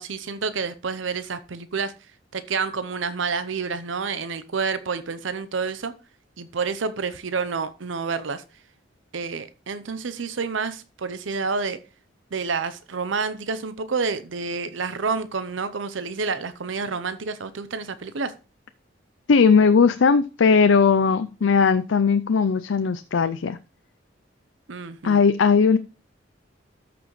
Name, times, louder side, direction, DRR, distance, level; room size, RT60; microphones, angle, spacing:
voice 1, 0.0-1.9 2.3-5.9 6.4-8.4 9.1-11.8 12.3-18.3 24.7-25.2, right 5 dB, 90° right, 0.7 m, -29 dB
voice 2, 19.3-23.6 25.0-25.8, left 5 dB, 80° left, 0.5 m, -18 dB
13.5 x 6.0 x 3.1 m
head